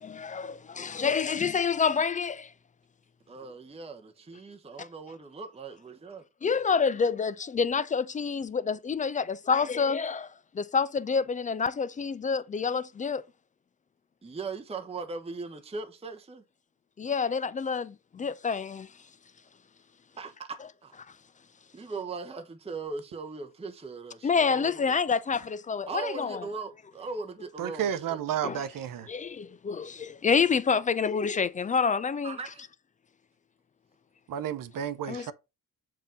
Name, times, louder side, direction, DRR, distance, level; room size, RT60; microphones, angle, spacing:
voice 1, 0.0-2.5 6.4-10.3 10.6-13.2 17.0-18.9 24.2-26.4 28.4-28.6 29.1-32.4 35.1-35.3, left 5 dB, 20° left, 0.3 m, -28 dB
voice 2, 3.3-6.2 14.2-16.4 20.2-20.9 21.7-25.0 25.9-28.5 32.2-32.7, right 4 dB, 15° right, 0.9 m, -39 dB
voice 3, 27.6-29.1 34.3-35.3, right 9 dB, 45° right, 0.9 m, -32 dB
7.2 x 2.8 x 5.2 m
hypercardioid pair, 50°, 46 cm